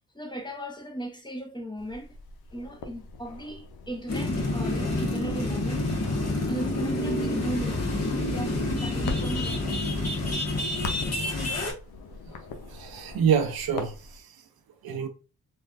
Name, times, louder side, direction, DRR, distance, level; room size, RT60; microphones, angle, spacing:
voice 1, 0.1-2.1 2.5-5.9 6.2-9.6, right 1 dB, 10° left, 0.7 m, -36 dB
sound 1, 1.8-14.2, left 3 dB, 85° left, 0.6 m, -42 dB
sound 2, 4.1-11.7, left 2 dB, 40° left, 1.1 m, -28 dB
voice 2, 12.7-14.3 14.8-15.1, right 7 dB, 75° right, 0.6 m, -27 dB
3.2 x 2.3 x 2.3 m
cardioid pair, 50°, 37 cm